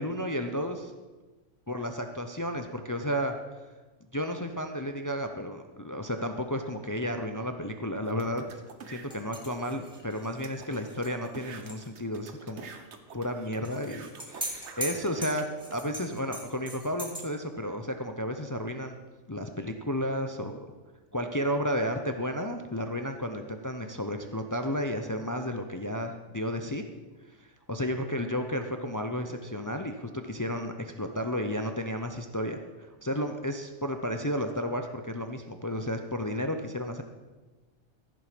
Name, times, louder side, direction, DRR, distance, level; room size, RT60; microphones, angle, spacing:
voice 1, 0.0-0.9 1.7-3.3 4.1-8.6 8.9-12.7 13.1-19.0 19.3-20.6 21.1-26.8 27.7-32.6 33.0-37.0, equal, 25° left, 6 dB, 0.4 m, -32 dB
sound 1, 8.0-9.1 9.7-9.8 10.0-10.1 10.4-15.8, right 5 dB, 60° right, 1.2 m, -47 dB
sound 2, 9.1-11.9 12.1-12.2 13.6-17.2, equal, 5° right, 2.1 m, -40 dB
15.0 x 7.3 x 5.1 m, 1.2 s
omnidirectional pair, 1.4 m